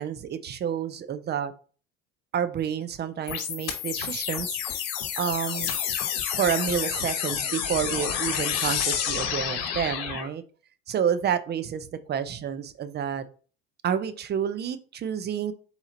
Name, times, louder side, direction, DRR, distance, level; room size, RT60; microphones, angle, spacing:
voice 1, 0.0-1.5 2.3-4.8 5.2-5.7 6.3-10.4 10.9-13.2 13.8-15.5, right 8 dB, 35° right, 12 dB, 0.6 m, -29 dB
sound 1, 3.3-10.3, left 8 dB, 70° left, 1.1 m, -29 dB
4.1 x 2.9 x 3.8 m, 0.39 s
hypercardioid pair, 80°, 29 cm